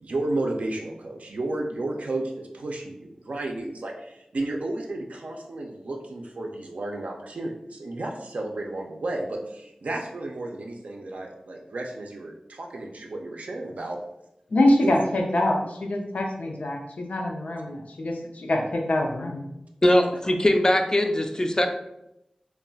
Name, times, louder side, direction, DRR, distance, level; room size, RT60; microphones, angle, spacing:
voice 1, 0.0-14.0 14.8-14.9, right 2 dB, 80° right, 1 dB, 0.4 m, -32 dB
voice 2, 14.5-19.4, left 1 dB, 90° left, 1 dB, 0.5 m, -24 dB
voice 3, 19.8-21.7, left 1 dB, 25° left, 5 dB, 0.3 m, -21 dB
2.3 x 2.1 x 3.8 m, 0.85 s
wide cardioid pair, 70°, 2 cm